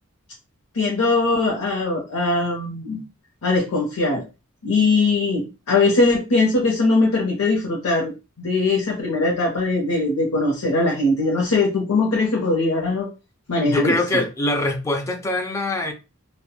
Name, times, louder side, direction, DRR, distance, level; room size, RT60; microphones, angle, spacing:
voice 1, 0.7-3.0 3.4-4.2 4.6-13.1 13.5-14.2, left 3 dB, 90° left, 0.6 m, -21 dB
voice 2, 13.6-15.9, left 1 dB, 15° left, 0.3 m, -23 dB
2.9 x 2.1 x 2.2 m
head